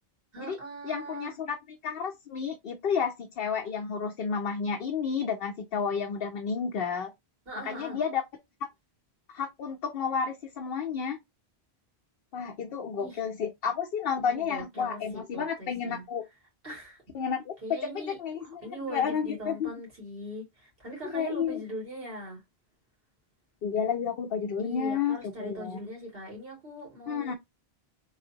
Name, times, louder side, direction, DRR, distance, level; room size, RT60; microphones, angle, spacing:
voice 1, 0.3-1.3 7.5-8.0 13.0-13.2 14.2-16.0 16.6-17.0 17.6-22.4 24.6-27.3, equal, 65° right, 2.7 m, -41 dB
voice 2, 0.8-7.1 7.6-8.2 8.6-8.7 9.3-11.2 12.3-16.2 17.1-17.5 17.8-19.7 21.1-21.6 23.6-25.8 27.1-27.3, left 6 dB, 65° left, 0.8 m, -31 dB
3.9 x 3.4 x 2.8 m
omnidirectional pair, 1.1 m